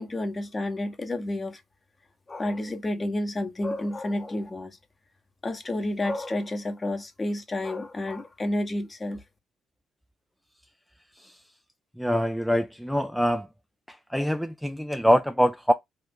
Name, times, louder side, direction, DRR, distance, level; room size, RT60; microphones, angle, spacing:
voice 1, 0.0-1.6 2.3-4.8 5.4-9.2, left 1 dB, 30° left, 0.9 m, -30 dB
voice 2, 12.0-13.5 13.9-15.7, equal, ahead, 0.3 m, -24 dB
3.0 x 2.6 x 3.6 m
hypercardioid pair, 60°, 0 cm